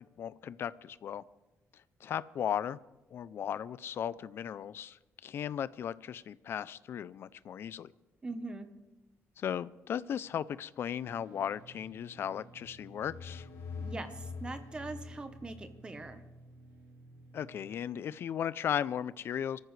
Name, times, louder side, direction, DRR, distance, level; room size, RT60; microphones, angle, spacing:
voice 1, 0.2-1.2 2.0-2.8 3.1-7.9 9.4-13.5 17.3-19.6, left 9 dB, 50° left, 17 dB, 0.4 m, -36 dB
voice 2, 8.2-8.7 13.8-16.2, right 3 dB, 20° right, 9 dB, 1.0 m, -42 dB
sound 1, 11.0-17.7, right 2 dB, 80° right, 4.4 m, -55 dB
sound 2, 12.7-16.3, left 5 dB, 75° left, 2.3 m, -45 dB
24.0 x 14.0 x 3.3 m, 1.0 s
cardioid pair, 170°, 5 cm